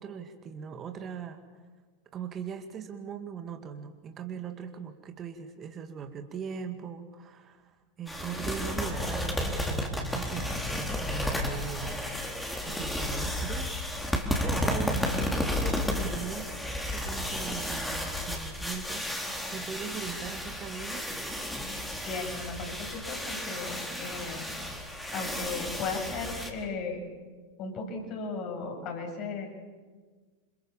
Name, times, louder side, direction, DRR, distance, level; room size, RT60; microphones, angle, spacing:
voice 1, 0.0-1.4 2.1-16.6 16.9-21.1, right 7 dB, 25° right, 6 dB, 2.3 m, -40 dB
sound 1, 8.1-26.5, left 1 dB, 5° left, 4.3 m, -32 dB
voice 2, 22.0-24.5 25.1-27.0 27.6-29.5, left 4 dB, 40° left, 2 dB, 7.8 m, -36 dB
28.5 x 28.0 x 7.4 m, 1.4 s
figure-of-eight pair, 90°, 0 cm